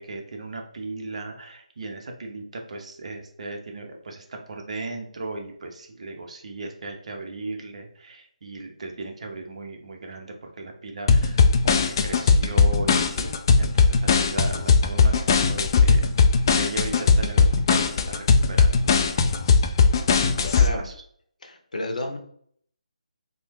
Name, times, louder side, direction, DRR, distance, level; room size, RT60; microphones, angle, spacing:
voice 1, 0.0-16.0 16.5-19.1 20.1-20.9, right 2 dB, 60° right, 3 dB, 0.8 m, -37 dB
sound 1, 11.1-20.7, left 5 dB, 35° left, 0.3 m, -18 dB
voice 2, 20.6-20.9 21.4-22.2, left 2 dB, 75° left, 4 dB, 0.7 m, -31 dB
3.1 x 2.2 x 3.1 m, 0.64 s
figure-of-eight pair, 155°, 4 cm